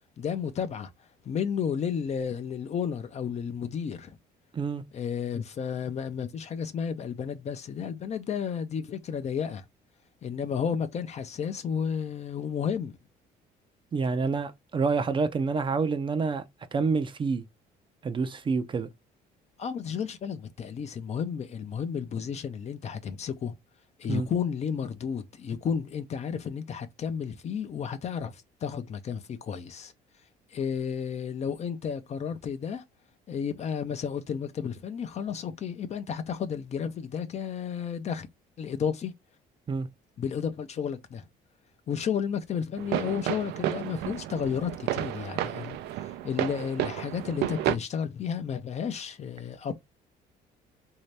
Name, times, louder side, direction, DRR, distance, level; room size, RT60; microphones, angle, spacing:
voice 1, 0.2-0.9 1.2-4.2 4.9-9.6 10.2-12.9 19.6-23.5 24.0-29.9 30.5-32.8 33.3-38.3 38.6-39.1 40.2-41.2 41.9-45.8 46.2-49.7, left 7 dB, 40° left, 0.6 m, -32 dB
voice 2, 13.9-16.4 16.7-17.4 18.0-18.9 24.1-24.3 39.7-39.9, right 4 dB, 30° right, 0.5 m, -27 dB
sound 1, 42.8-47.8, right 13 dB, 85° right, 0.5 m, -31 dB
3.1 x 2.8 x 3.2 m
cardioid pair, 110°, 17 cm